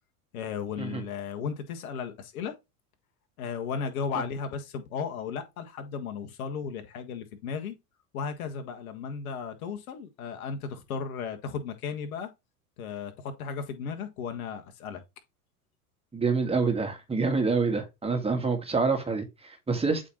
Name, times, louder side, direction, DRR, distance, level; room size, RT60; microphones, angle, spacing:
voice 1, 0.3-2.5 3.4-7.7 8.1-12.3 12.8-15.0, left 6 dB, 70° left, 1.7 m, -35 dB
voice 2, 16.1-20.0, right 4 dB, 15° right, 1.8 m, -27 dB
8.2 x 3.9 x 3.0 m
hypercardioid pair, 95°, 44 cm